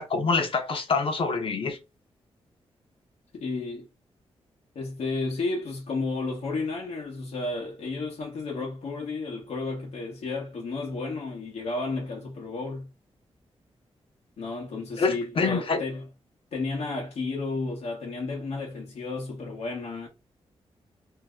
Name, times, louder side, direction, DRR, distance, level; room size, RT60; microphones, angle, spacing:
voice 1, 0.0-1.8 15.0-15.8, left 4 dB, 55° left, 0.9 m, -26 dB
voice 2, 3.3-3.9 4.7-12.9 14.4-16.1 16.5-20.1, left 3 dB, 80° left, 1.0 m, -32 dB
2.8 x 2.1 x 3.5 m
cardioid pair, 85°, 11 cm